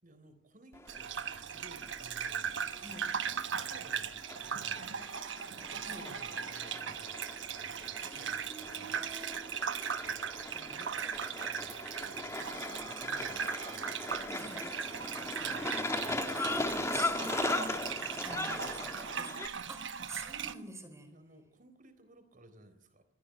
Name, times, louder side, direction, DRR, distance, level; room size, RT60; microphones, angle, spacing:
voice 1, 0.0-7.3 7.9-9.5 10.5-15.9 18.4-19.4 21.1-23.1, right 1 dB, 45° right, 10 dB, 3.9 m, -58 dB
sound 1, 0.7-19.5, left 2 dB, 15° left, 1.7 m, -39 dB
Gurgling / Bathtub (filling or washing), 0.9-20.5, right 7 dB, 65° right, 1.2 m, -38 dB
voice 2, 8.0-9.5 11.0-11.1 14.4-14.6 16.3-17.8 18.1-19.3 19.7-21.1, right 2 dB, 15° right, 8 dB, 4.3 m, -46 dB
23.5 x 15.5 x 9.2 m, 0.65 s
head